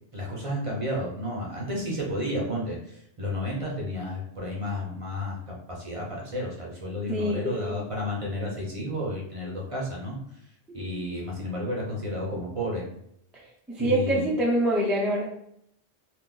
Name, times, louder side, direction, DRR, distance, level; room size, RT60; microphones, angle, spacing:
voice 1, 0.1-10.2 10.7-12.9 13.8-14.3, left 1 dB, 35° right, -3 dB, 0.7 m, -32 dB
voice 2, 7.1-7.8 10.7-10.8 13.8-15.3, right 1 dB, ahead, -4 dB, 0.3 m, -25 dB
2.5 x 2.4 x 3.8 m, 0.73 s
omnidirectional pair, 1.2 m